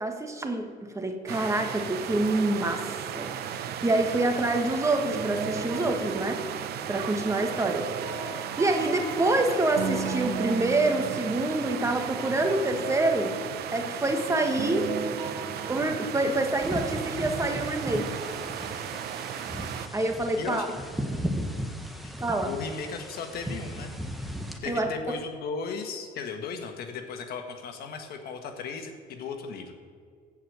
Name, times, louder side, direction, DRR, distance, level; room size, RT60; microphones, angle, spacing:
voice 1, 0.0-6.4 6.9-7.9 8.2-13.4 13.7-14.9 15.7-18.1 19.9-20.7 22.2-22.5 24.7-24.9, right 2 dB, 15° right, 4 dB, 1.4 m, -27 dB
sound 1, 1.3-19.9, right 9 dB, 70° right, 0.8 m, -36 dB
sound 2, 5.1-7.0 7.4-11.9 12.2-14.1 14.6-15.8, right 5 dB, 85° right, 1.6 m, -37 dB
sound 3, 16.6-24.6, equal, ahead, 1.3 m, -36 dB
voice 2, 20.4-20.8 22.4-24.0 24.6-29.7, left 5 dB, 65° left, 5 dB, 1.5 m, -36 dB
14.5 x 5.0 x 8.1 m, 2.1 s
cardioid pair, 110°, 17 cm